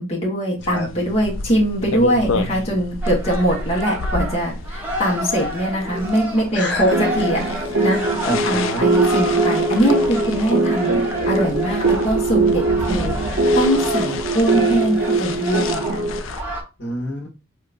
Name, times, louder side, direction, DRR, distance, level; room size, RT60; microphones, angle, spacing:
voice 1, 0.0-7.4 7.8-8.0 8.4-10.9 11.3-13.1 13.5-16.0, right 1 dB, 30° left, -4 dB, 1.3 m, -22 dB
sound 1, 0.6-16.4, left 3 dB, 75° left, 0.4 m, -32 dB
sound 2, 3.0-16.6, equal, 10° right, 1.2 m, -29 dB
voice 2, 6.5-6.8 7.9-8.8 16.8-17.3, equal, 55° left, 0 dB, 1.4 m, -26 dB
sound 3, 6.9-16.2, right 3 dB, 70° right, 0.7 m, -21 dB
4.5 x 2.9 x 2.4 m, 0.29 s
head